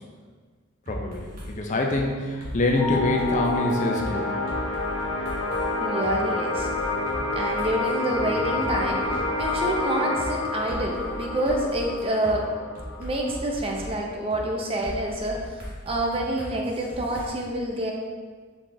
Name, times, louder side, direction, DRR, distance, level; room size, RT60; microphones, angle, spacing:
voice 1, 0.9-4.3, left 2 dB, 40° left, 1 dB, 0.4 m, -25 dB
sound 1, 0.9-1.5 1.9-2.0 2.4-4.1 4.5-5.7 6.0-6.1 6.5-9.8 10.2-10.3 10.7-12.3 12.7-13.9 14.3-14.4 14.8-17.3, equal, 45° right, 1.3 m, -38 dB
sound 2, 2.7-13.8, left 3 dB, 85° left, 0.8 m, -29 dB
voice 2, 5.8-6.7 7.3-12.5 13.0-15.4 15.8-17.9, right 1 dB, 30° right, 0 dB, 0.5 m, -27 dB
4.6 x 2.4 x 4.1 m, 1.5 s
head